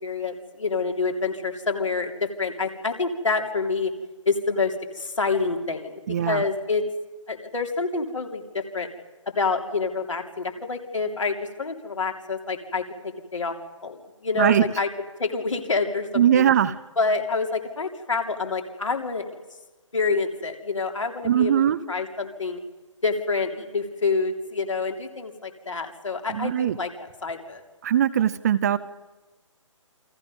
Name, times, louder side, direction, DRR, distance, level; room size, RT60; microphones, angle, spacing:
voice 1, 0.0-3.9 4.2-6.8 7.3-8.9 9.4-13.5 13.8-14.0 14.2-14.9 15.2-16.5 17.0-19.2 19.9-21.5 21.9-22.6 23.0-27.6, left 4 dB, 70° left, 3 dB, 3.2 m, -27 dB
voice 2, 6.1-6.4 14.4-14.6 16.2-16.7 21.2-21.8 26.3-26.8 27.8-28.8, right 10 dB, 30° right, 15 dB, 0.7 m, -20 dB
28.5 x 25.0 x 5.4 m, 1.2 s
figure-of-eight pair, 140°, 17 cm